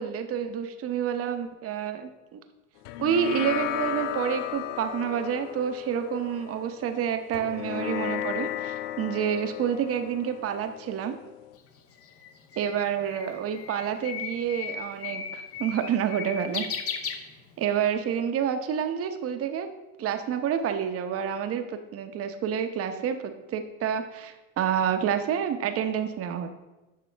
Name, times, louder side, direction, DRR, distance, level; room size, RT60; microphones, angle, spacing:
voice 1, 0.0-2.4 3.0-11.2 12.6-16.7 17.6-19.7 20.0-26.5, right 8 dB, 35° right, 8 dB, 0.8 m, -28 dB
sound 1, 2.9-11.6, left 13 dB, 75° left, 0.6 m, -35 dB
Bird, 11.6-17.8, left 6 dB, 35° left, 0.9 m, -36 dB
10.5 x 6.1 x 3.4 m, 1.1 s
supercardioid pair, 110°, 40 cm